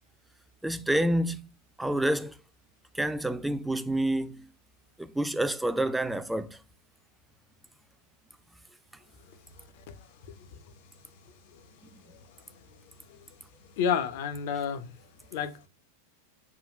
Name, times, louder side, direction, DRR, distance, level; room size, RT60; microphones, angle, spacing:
voice 1, 0.6-1.4 1.8-2.4 2.9-4.5 5.0-6.6, right 1 dB, 5° right, 0.3 m, -28 dB
voice 2, 13.8-14.9 15.3-15.7, left 7 dB, 50° left, 0.5 m, -30 dB
3.7 x 2.2 x 3.0 m
figure-of-eight pair, 90°, 0 cm